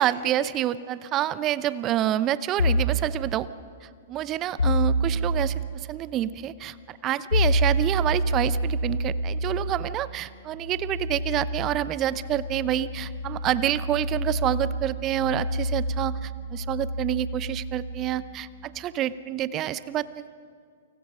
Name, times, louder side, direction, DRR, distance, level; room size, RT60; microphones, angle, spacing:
voice 1, 0.0-3.5 3.8-20.1, right 12 dB, 30° right, 16 dB, 0.8 m, -28 dB
sound 1, 2.6-3.0 4.6-5.5 7.3-18.7, equal, 75° left, 1.6 m, -28 dB
29.5 x 26.0 x 5.6 m, 2.1 s
figure-of-eight pair, 110°, 0 cm